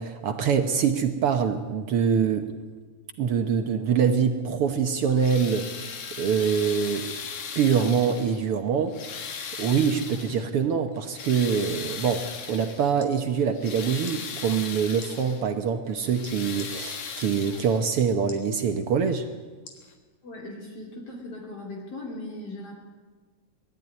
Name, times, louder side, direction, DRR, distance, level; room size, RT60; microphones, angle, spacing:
voice 1, 0.0-2.5 3.2-7.1 7.5-9.0 9.6-19.3, right 6 dB, 60° right, 7 dB, 1.7 m, -24 dB
sound 1, 5.0-8.5 8.9-10.5 11.0-12.9 13.4-15.4 15.9-18.0 19.1-19.2 19.8-19.9, left 6 dB, 70° left, 3.0 m, -38 dB
sound 2, 13.0-13.2 14.0-14.2 14.9-15.1 16.6-16.7 17.9-18.4 19.7-19.9 20.5-20.6, left 5 dB, 85° left, 4.0 m, -45 dB
voice 2, 20.2-22.7, left 2 dB, 55° left, -2 dB, 3.8 m, -38 dB
21.5 x 13.5 x 9.6 m, 1.4 s
omnidirectional pair, 3.4 m